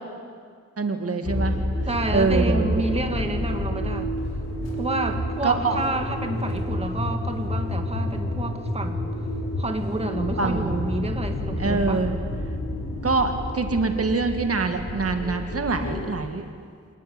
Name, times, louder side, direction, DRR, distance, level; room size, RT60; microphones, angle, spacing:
voice 1, 0.8-1.6 2.1-2.8 5.4-5.8 10.4-10.8 11.6-12.2 13.0-16.5, right 4 dB, 50° right, 6 dB, 1.9 m, -24 dB
sound 1, 1.2-16.1, left 1 dB, 60° left, 6.2 m, -29 dB
voice 2, 1.9-4.1 4.8-9.2 9.6-12.0, right 2 dB, 20° right, 5 dB, 2.0 m, -29 dB
27.5 x 19.0 x 9.9 m, 2.1 s
wide cardioid pair, 150°, 29 cm